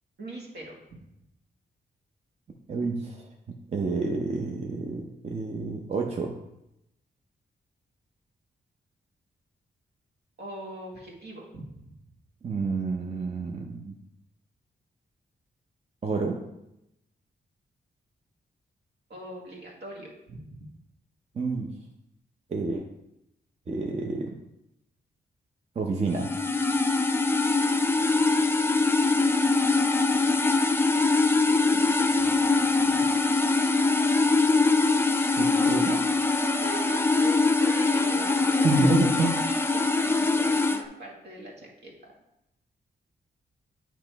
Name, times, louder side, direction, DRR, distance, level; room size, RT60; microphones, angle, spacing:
voice 1, 0.2-1.0 10.4-11.9 19.1-20.6 31.6-32.3 32.8-32.9 36.6-42.1, right 1 dB, 70° right, -2 dB, 1.7 m, -41 dB
voice 2, 2.7-3.3 3.7-6.4 12.4-14.0 16.0-16.4 21.3-21.7 22.5-22.8 23.7-24.4 25.8-26.3 35.3-36.0 38.6-39.3, right 3 dB, 35° right, 1 dB, 0.7 m, -28 dB
sound 1, 26.1-40.8, left 3 dB, 15° left, 0.4 m, -23 dB
8.7 x 3.0 x 4.6 m, 0.85 s
wide cardioid pair, 120°, 18 cm